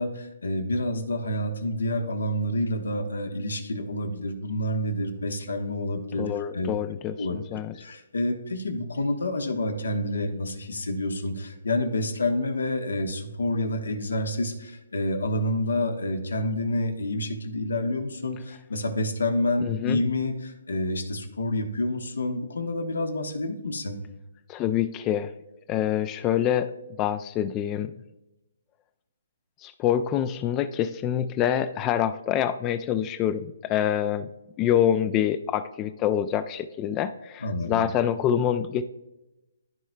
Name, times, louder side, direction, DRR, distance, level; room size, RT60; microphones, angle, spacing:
voice 1, 0.0-6.3 6.5-6.7 7.2-24.0 37.4-37.8, left 1 dB, 85° left, 5 dB, 1.2 m, -28 dB
voice 2, 6.2-7.7 19.6-20.0 24.5-25.3 25.7-26.7 27.0-27.9 29.6-34.3 34.6-38.8, left 10 dB, 20° left, 13 dB, 0.3 m, -26 dB
13.5 x 4.6 x 2.2 m, 0.99 s
hypercardioid pair, 150°, 0 cm